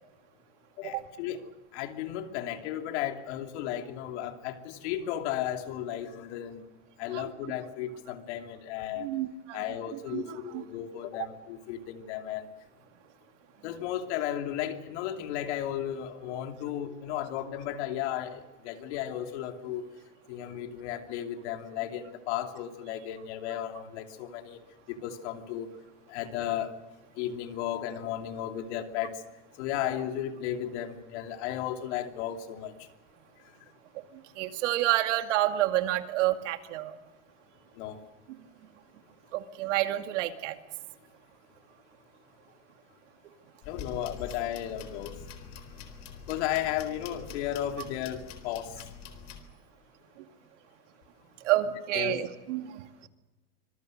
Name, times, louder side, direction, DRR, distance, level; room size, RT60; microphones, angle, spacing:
voice 1, 0.8-1.4 1.7-6.6 7.0-9.1 9.5-12.5 13.6-19.8 20.3-24.6 24.9-25.7 26.1-26.7 27.2-29.2 29.6-32.7 37.8-38.0 43.7-45.1 46.3-48.8 51.9-52.2, left 11 dB, 65° left, 5 dB, 2.9 m, -34 dB
voice 2, 9.0-9.6 10.1-10.6 34.4-37.0 39.3-40.6 51.4-53.1, right 14 dB, 75° right, 7 dB, 2.2 m, -29 dB
sound 1, 43.6-49.4, left 6 dB, 45° left, 4.1 m, -45 dB
25.5 x 23.0 x 6.5 m, 1.2 s
supercardioid pair, 150°, 36 cm